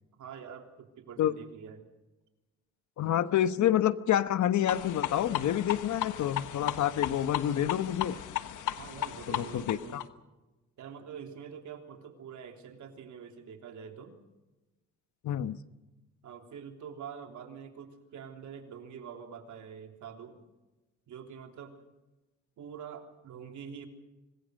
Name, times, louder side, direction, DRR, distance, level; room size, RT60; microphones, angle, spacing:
voice 1, 0.1-1.8 8.8-10.1 10.8-14.2 16.2-20.4 21.1-21.8 22.6-23.9, right 7 dB, 75° right, 4 dB, 3.5 m, -45 dB
voice 2, 3.0-8.2 9.3-10.0 15.2-15.6, left 11 dB, 70° left, 12 dB, 1.2 m, -28 dB
sound 1, 4.7-10.0, left 12 dB, 85° left, 1.3 m, -35 dB
26.0 x 21.0 x 6.5 m, 1.1 s
cardioid pair, 90°, 30 cm